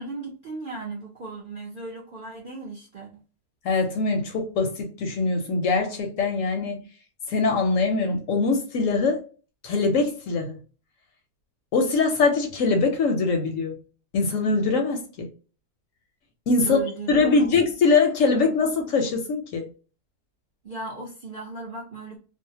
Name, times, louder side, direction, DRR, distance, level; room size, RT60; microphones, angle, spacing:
voice 1, 0.0-3.2 16.6-17.5 20.6-22.2, right 2 dB, 55° right, 0.6 m, -36 dB
voice 2, 3.6-6.8 7.3-9.2 9.6-10.6 11.7-13.8 14.1-15.3 16.5-16.8 17.1-19.7, left 4 dB, 65° left, 0.9 m, -22 dB
2.6 x 2.0 x 2.7 m
omnidirectional pair, 1.7 m